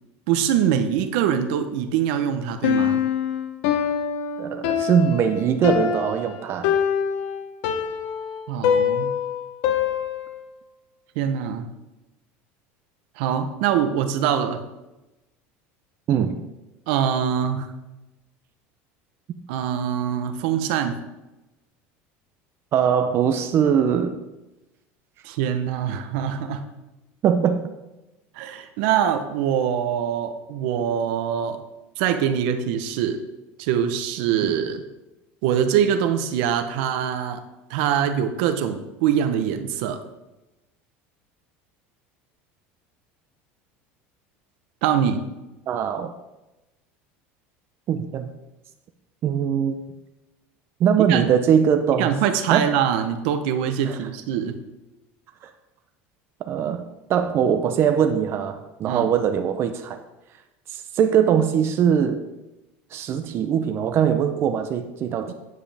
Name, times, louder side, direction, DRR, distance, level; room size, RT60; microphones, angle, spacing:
voice 1, 0.3-3.0 8.5-9.1 11.2-11.7 13.2-14.6 16.9-17.7 19.5-21.0 25.2-26.6 28.3-31.6 32.0-33.2 33.6-34.8 35.4-37.4 37.7-40.0 44.8-45.2 51.1-51.2 52.0-54.6 58.8-59.1 65.3-65.4, right 9 dB, 75° right, 8 dB, 0.9 m, -23 dB
Piano, 2.6-10.5, left 8 dB, 75° left, 0.9 m, -24 dB
voice 2, 4.4-6.8 16.1-16.4 22.7-24.2 27.2-27.6 45.7-46.1 47.9-48.3 49.2-49.7 50.8-52.1 52.5-52.7 53.9-54.1 55.4-55.5 56.5-60.0 60.7-62.2 62.9-65.3, right 8 dB, 45° right, 7 dB, 0.7 m, -21 dB
9.5 x 7.6 x 3.5 m, 0.99 s
supercardioid pair, 120°, 6 cm